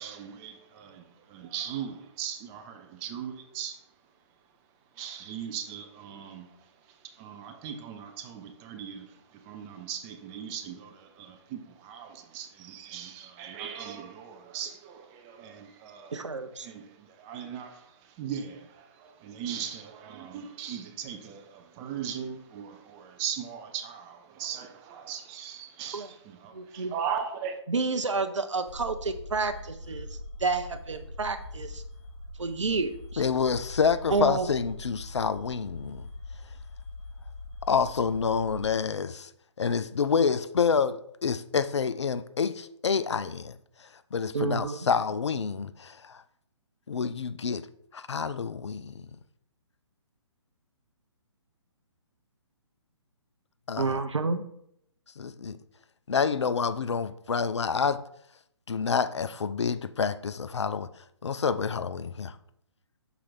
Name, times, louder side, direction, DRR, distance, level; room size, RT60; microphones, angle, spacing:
voice 1, 0.0-4.5 4.9-27.6, right 8 dB, 15° right, 6 dB, 0.4 m, -39 dB
voice 2, 16.1-16.7 25.9-26.1 26.5-26.9 27.7-30.1 30.4-31.8 32.4-33.2 34.1-34.5 44.3-44.8 53.8-54.4, right 3 dB, 75° right, 8 dB, 0.6 m, -29 dB
sound 1, 28.7-38.7, left 2 dB, 25° left, 2.2 m, -42 dB
voice 3, 33.2-36.1 37.6-39.3 39.6-43.5 44.1-46.2 46.9-47.7 47.9-49.0 53.7-54.0 55.2-55.6 56.1-58.0 58.7-60.9 61.2-62.4, left 6 dB, 65° left, 13 dB, 0.4 m, -28 dB
5.9 x 4.4 x 4.0 m, 0.72 s
figure-of-eight pair, 130°, 16 cm